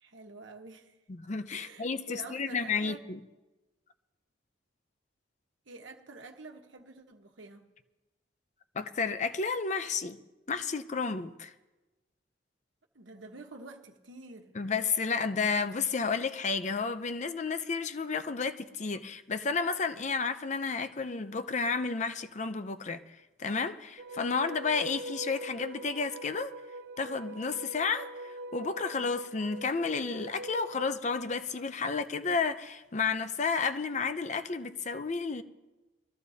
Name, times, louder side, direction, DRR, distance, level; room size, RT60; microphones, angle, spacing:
voice 1, 0.0-0.9 1.5-3.1 5.7-7.7 12.9-14.5, right 3 dB, 75° right, 1.2 m, -48 dB
voice 2, 1.1-3.2 8.7-10.2 10.5-11.5 14.5-23.0 23.4-26.5 27.0-35.4, left 5 dB, 40° left, 0.5 m, -31 dB
sound 1, 24.0-30.9, right 1 dB, 55° right, 0.4 m, -43 dB
22.0 x 13.5 x 2.8 m
head